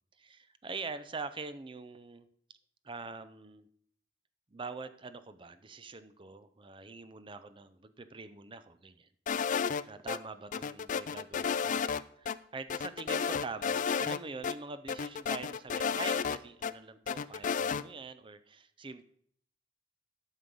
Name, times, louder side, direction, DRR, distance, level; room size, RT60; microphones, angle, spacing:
voice 1, 0.2-2.3 2.8-3.7 4.5-9.1 9.6-19.0, right 4 dB, 25° right, 12 dB, 0.6 m, -44 dB
sound 1, 9.3-10.2 10.5-12.0 12.3-12.4 12.7-14.2 14.4-14.5 14.9-16.7 17.1-17.8, left 6 dB, 45° left, 0.4 m, -32 dB
11.0 x 6.5 x 5.3 m, 0.64 s
head